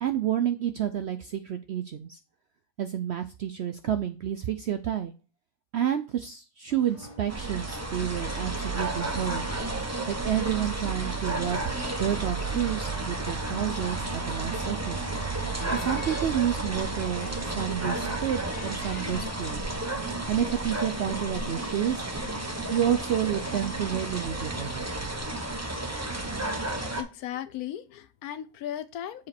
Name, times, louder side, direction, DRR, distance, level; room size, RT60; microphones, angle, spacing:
voice 1, 0.0-2.2 2.8-5.1 5.7-9.5 10.1-15.0 15.7-19.6 20.3-22.0 22.7-24.9, right 10 dB, 65° right, 0.6 m, -30 dB
sound 1, 6.7-25.6, left 1 dB, 20° left, 1.5 m, -48 dB
sound 2, 7.3-27.0, right 2 dB, 15° right, 0.7 m, -32 dB
Guitar, 15.6-17.7 18.1-20.4, left 6 dB, 55° left, 0.4 m, -45 dB
voice 2, 26.8-29.3, left 11 dB, 75° left, 1.1 m, -37 dB
7.3 x 5.0 x 4.3 m
omnidirectional pair, 1.6 m